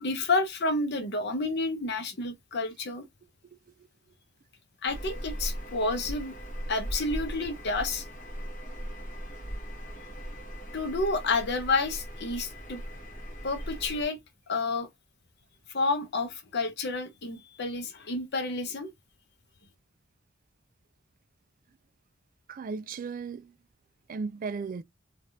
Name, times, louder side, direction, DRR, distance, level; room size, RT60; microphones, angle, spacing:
voice 1, 0.0-3.1 4.8-6.4 6.7-8.0 10.7-12.8 13.4-14.2 14.5-14.9 15.7-18.9, left 3 dB, 60° left, 0.8 m, -30 dB
sound 1, 4.9-14.1, equal, 45° left, 1.2 m, -39 dB
voice 2, 22.5-23.6 24.1-24.8, right 5 dB, 45° right, 0.3 m, -36 dB
3.3 x 2.4 x 2.7 m
head